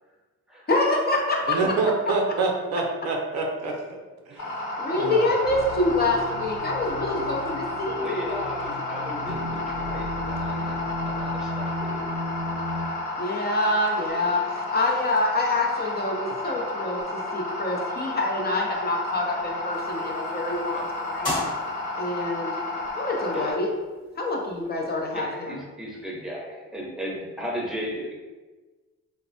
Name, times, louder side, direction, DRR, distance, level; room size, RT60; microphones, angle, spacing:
voice 1, 0.7-1.8 4.8-8.4 13.2-21.4 22.0-22.5 23.0-23.7 24.2-25.6, left 2 dB, 35° left, -1 dB, 0.5 m, -26 dB
voice 2, 1.5-4.0 4.3-4.6 4.9-5.2, right 3 dB, 60° right, 1 dB, 0.6 m, -26 dB
sound 1, 4.4-23.5, left 2 dB, 85° left, 1.1 m, -32 dB
sound 2, 5.4-12.9, left 1 dB, 65° left, 0.7 m, -34 dB
voice 3, 7.4-12.1 12.7-12.9 20.7-20.9 23.3-23.6 25.1-28.1, equal, ahead, -3 dB, 0.7 m, -36 dB
sound 3, 19.7-25.2, left 2 dB, 15° left, 1.1 m, -38 dB
3.1 x 2.0 x 2.6 m, 1.3 s
cardioid pair, 90°, 30 cm